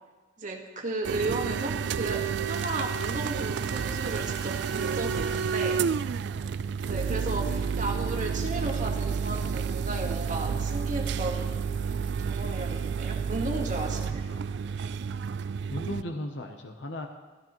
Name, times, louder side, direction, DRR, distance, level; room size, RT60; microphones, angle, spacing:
voice 1, 0.4-5.8 6.9-11.6 12.2-14.3, right 2 dB, 45° right, 0 dB, 1.5 m, -34 dB
sound 1, 1.0-16.0, right 6 dB, 65° right, 0.3 m, -30 dB
sound 2, 2.4-5.9, right 1 dB, ahead, 2.5 m, -46 dB
voice 2, 13.8-14.5 15.7-17.1, left 1 dB, 70° left, 5 dB, 0.8 m, -37 dB
13.5 x 13.0 x 3.1 m, 1.2 s
head